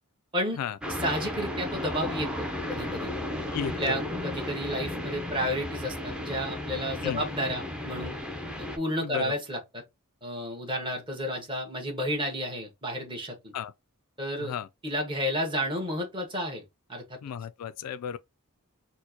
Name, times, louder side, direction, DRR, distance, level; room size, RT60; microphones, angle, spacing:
sound 1, 0.8-8.8, left 1 dB, 5° right, 0.6 m, -34 dB
voice 1, 1.0-3.1 3.8-8.1 8.6-9.6 10.2-13.5 14.2-14.5 14.8-16.6 16.9-17.2, equal, 20° right, 1.3 m, -31 dB
voice 2, 3.5-4.1 7.0-7.2 9.0-9.4 13.5-13.7 14.4-14.7 17.2-18.2, left 8 dB, 90° left, 0.3 m, -34 dB
4.4 x 2.2 x 2.8 m
head